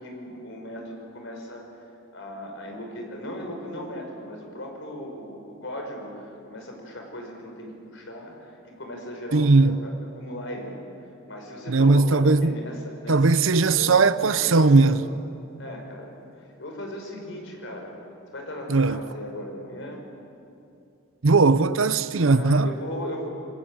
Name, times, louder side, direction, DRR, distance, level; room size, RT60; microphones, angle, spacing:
voice 1, 0.0-1.8 2.1-9.9 10.2-10.8 11.3-14.0 14.2-15.0 15.6-17.9 18.3-20.0 22.3-23.3, left 1 dB, 65° left, 5.7 m, -37 dB
voice 2, 9.3-9.8 11.7-12.5 13.1-15.0 18.7-19.0 21.2-22.7, right 3 dB, 75° right, 0.8 m, -18 dB
27.0 x 20.5 x 9.0 m
head